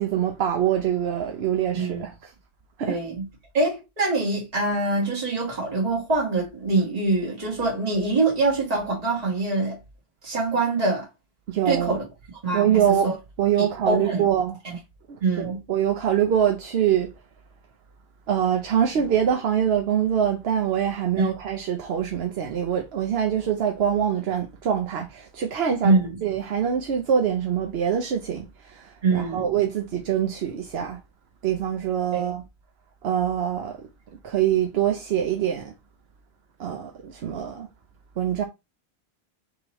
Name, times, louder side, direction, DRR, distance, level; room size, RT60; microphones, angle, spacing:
voice 1, 0.0-2.3 2.8-3.0 11.5-11.9 12.5-14.6 15.4-17.1 18.3-26.0 26.2-31.0 31.4-32.4 33.0-33.9 34.2-35.7 36.6-37.7 38.2-38.4, right 9 dB, 75° right, 0.9 m, -24 dB
voice 2, 2.9-3.3 3.5-9.8 10.2-11.1 11.7-12.0 12.4-13.1 13.6-14.2 14.6-14.8 15.2-15.6 21.2-21.3 25.8-26.2 29.0-29.4 32.1-32.3, right 3 dB, 35° right, 1.8 m, -24 dB
5.4 x 2.9 x 3.0 m
omnidirectional pair, 1.1 m